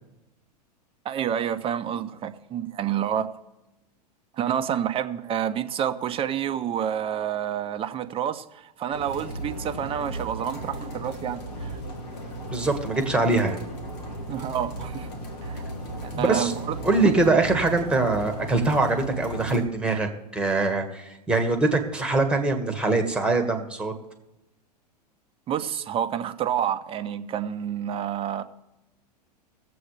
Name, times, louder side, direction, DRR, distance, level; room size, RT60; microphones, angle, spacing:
voice 1, 1.0-3.3 4.4-11.8 14.3-15.1 15.4-15.6 16.0-16.8 17.0-17.1 25.5-28.4, right 9 dB, 25° right, 0.8 m, -29 dB
sound 1, 8.9-19.6, right 1 dB, 65° left, 2.4 m, -36 dB
voice 2, 12.5-13.6 16.1-16.5 16.8-23.9, right 3 dB, 5° right, 1.8 m, -23 dB
20.0 x 7.8 x 3.4 m
hypercardioid pair, 100°, 21 cm